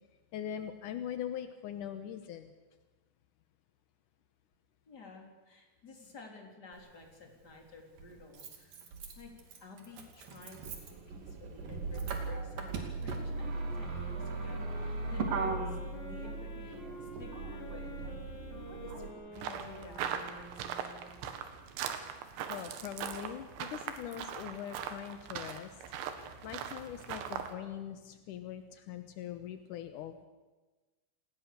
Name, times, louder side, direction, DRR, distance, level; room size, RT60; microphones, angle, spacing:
voice 1, 0.3-2.5 22.5-25.8 26.1-30.3, left 10 dB, 80° left, 9 dB, 1.8 m, -42 dB
voice 2, 4.9-8.8 9.2-18.4 18.7-20.9 21.2-21.5, left 3 dB, 25° left, 2 dB, 3.7 m, -52 dB
Motor vehicle (road), 6.7-6.8 8.0-19.1, right 3 dB, 55° right, 3.9 m, -38 dB
sound 1, 13.6-21.3, left 1 dB, 45° left, 4.1 m, -49 dB
sound 2, 19.4-27.5, right 8 dB, 80° right, 3.9 m, -40 dB
28.0 x 19.5 x 6.8 m, 1.2 s
omnidirectional pair, 5.1 m